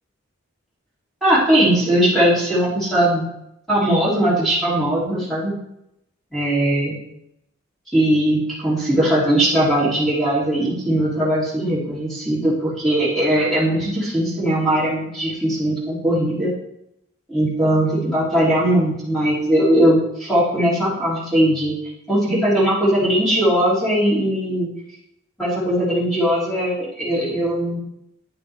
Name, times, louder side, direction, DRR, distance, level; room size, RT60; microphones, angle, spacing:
voice 1, 1.2-3.3 3.7-5.5 6.3-7.0 7.9-16.5 17.3-21.7 22.1-24.7 25.4-27.8, right 1 dB, ahead, -9 dB, 3.2 m, -19 dB
10.0 x 8.8 x 3.5 m, 0.82 s
head